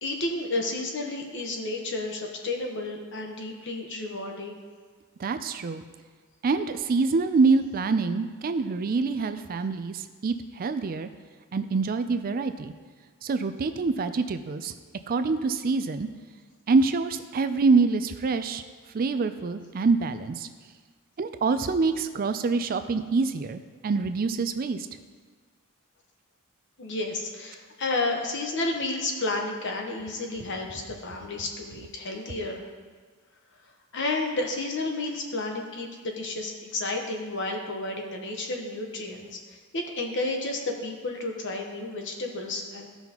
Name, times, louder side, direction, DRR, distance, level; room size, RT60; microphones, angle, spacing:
voice 1, 0.0-4.6 26.8-32.6 33.9-42.9, left 2 dB, 55° left, 2 dB, 1.1 m, -31 dB
voice 2, 5.2-5.8 6.4-11.1 11.5-12.7 13.2-14.7 15.1-16.1 16.7-18.6 18.9-20.5 21.2-24.8, right 4 dB, 40° right, 10 dB, 0.4 m, -25 dB
14.5 x 5.6 x 3.0 m, 1.5 s
head